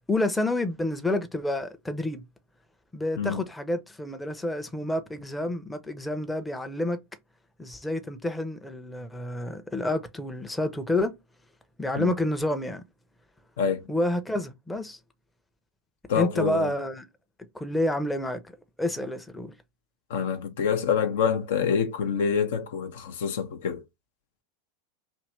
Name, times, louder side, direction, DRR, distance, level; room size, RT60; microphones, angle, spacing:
voice 1, 0.1-2.3 2.9-7.0 7.6-11.1 11.8-12.8 13.9-15.0 16.1-17.1 17.5-18.4 18.8-19.5, left 1 dB, 10° left, 0.6 m, -29 dB
voice 2, 16.1-16.7 20.1-23.8, left 7 dB, 65° left, 0.5 m, -26 dB
2.8 x 2.6 x 3.2 m
figure-of-eight pair, 90°, 0 cm